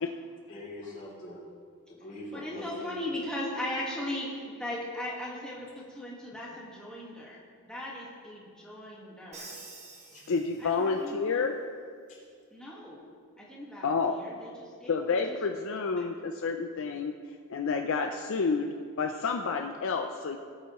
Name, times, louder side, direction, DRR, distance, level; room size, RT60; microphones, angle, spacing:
voice 1, 0.5-1.4 1.9-2.9 10.1-10.2 12.1-12.2, left 1 dB, 35° left, -5 dB, 3.1 m, -42 dB
voice 2, 2.3-4.3 4.6-9.6 10.6-11.4 12.5-13.0 13.4-15.4 16.0-16.1, left 1 dB, 5° left, -6 dB, 1.6 m, -38 dB
Crash cymbal, 9.3-11.1, right 3 dB, 30° right, 1.3 m, -48 dB
voice 3, 10.3-11.5 13.8-14.2 14.9-17.1 17.5-20.4, left 4 dB, 60° left, 4 dB, 0.5 m, -29 dB
18.5 x 8.2 x 3.1 m, 2.2 s
head